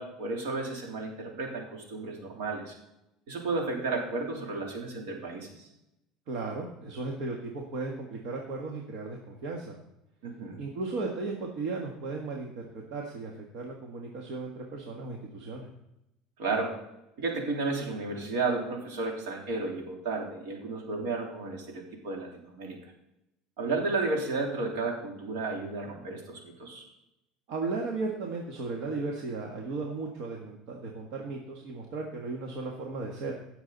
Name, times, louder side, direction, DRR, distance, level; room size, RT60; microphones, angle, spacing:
voice 1, 0.0-2.7 3.3-5.7 10.2-10.6 16.4-16.8 17.2-22.8 23.6-26.8, right 3 dB, 80° right, 0 dB, 3.4 m, -33 dB
voice 2, 6.3-9.8 10.6-15.7 27.5-33.3, right 3 dB, 60° right, 1 dB, 1.7 m, -35 dB
17.0 x 7.0 x 4.1 m, 0.87 s
cardioid pair, 145°, 0 cm